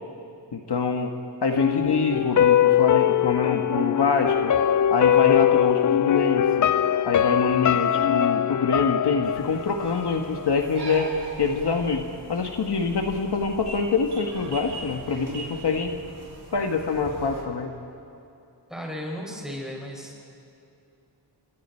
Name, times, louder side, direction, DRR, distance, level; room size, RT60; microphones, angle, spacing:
voice 1, 0.5-1.1 1.4-4.5 4.9-6.7 7.1-15.9 16.5-17.7, left 4 dB, 65° left, 3 dB, 1.6 m, -25 dB
sound 1, 1.6-10.6 10.9-11.0, left 10 dB, 45° left, 0.4 m, -22 dB
sound 2, 9.2-17.4, right 2 dB, 60° right, 5.4 m, -41 dB
voice 2, 18.7-20.2, equal, ahead, -3 dB, 6.3 m, -35 dB
30.0 x 24.0 x 4.5 m, 2.7 s
wide cardioid pair, 110°, 44 cm